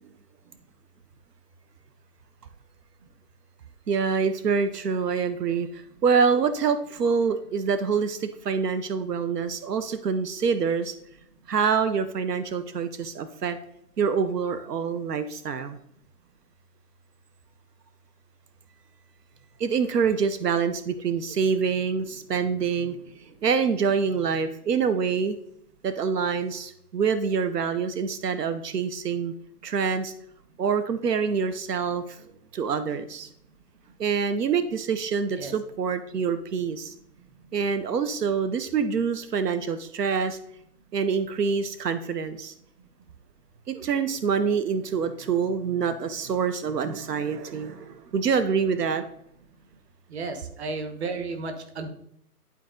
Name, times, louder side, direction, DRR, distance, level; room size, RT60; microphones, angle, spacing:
voice 1, 3.9-11.0 11.5-13.6 14.0-15.8 19.6-23.0 23.4-25.4 25.8-29.3 29.6-30.1 30.6-32.2 32.5-33.3 34.0-36.9 37.5-40.4 40.9-42.5 43.7-49.0, right 6 dB, 90° right, 11 dB, 0.8 m, -26 dB
voice 2, 50.1-51.9, right 3 dB, 45° right, 7 dB, 1.2 m, -33 dB
11.0 x 4.0 x 3.8 m, 0.74 s
hypercardioid pair, 160°, 46 cm